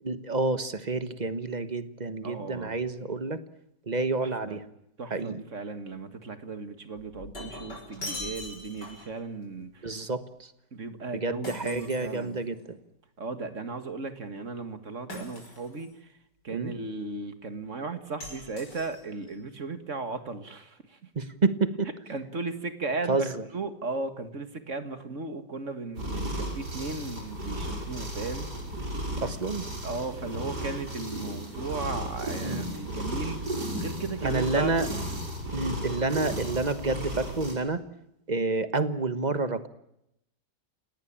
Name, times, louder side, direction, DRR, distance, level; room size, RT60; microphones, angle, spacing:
voice 1, 0.0-3.4 3.9-4.6 5.0-5.4 9.8-10.5 11.1-12.8 16.5-16.7 21.1-21.9 23.1-23.5 29.2-29.7 32.4-32.6 34.2-34.9 35.5-37.8 38.3-39.7, right 3 dB, 25° right, 12 dB, 1.2 m, -29 dB
voice 2, 2.2-2.7 4.2-4.6 5.0-10.0 10.7-12.4 13.2-16.2 16.4-21.1 22.1-28.5 29.1-29.2 29.8-34.7, right 3 dB, 45° right, 9 dB, 2.1 m, -36 dB
Shatter, 7.0-9.2 11.4-12.7 15.1-15.9 18.2-19.3, left 1 dB, 75° left, 6.3 m, -41 dB
sound 1, 25.9-37.5, equal, 65° right, 6.7 m, -34 dB
29.0 x 18.5 x 8.8 m, 0.82 s
omnidirectional pair, 1.9 m